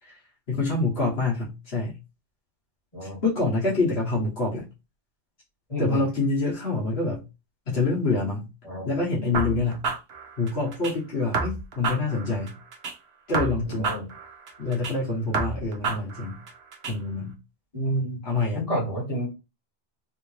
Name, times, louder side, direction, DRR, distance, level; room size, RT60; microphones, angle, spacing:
voice 1, 0.5-2.0 3.0-4.7 5.8-7.2 7.7-8.5 8.8-9.9 10.4-12.6 13.3-14.0 14.6-16.4 16.9-17.3 18.2-18.6, left 3 dB, 70° left, 1.5 m, -26 dB
voice 2, 5.7-6.0 8.6-8.9 13.7-14.1 17.7-18.2 18.5-19.3, right 1 dB, 35° left, 2.0 m, -29 dB
sound 1, 9.3-10.9 11.3-12.9 13.3-14.9 15.3-16.9, right 4 dB, 75° right, 1.0 m, -30 dB
3.4 x 2.7 x 3.1 m
omnidirectional pair, 1.1 m